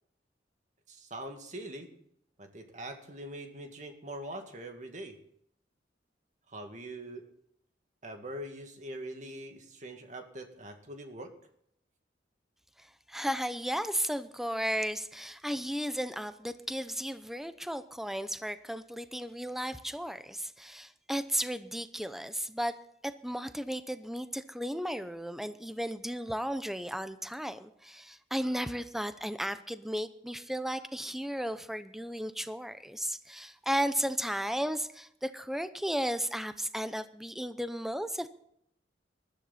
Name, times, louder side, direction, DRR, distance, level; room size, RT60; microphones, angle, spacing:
voice 1, 0.9-1.9 2.4-5.2 6.5-7.3 8.0-11.3, right 1 dB, 45° right, 4 dB, 2.2 m, -43 dB
voice 2, 12.8-22.8 23.0-38.3, equal, ahead, 11 dB, 0.7 m, -34 dB
20.5 x 13.0 x 4.3 m, 0.71 s
head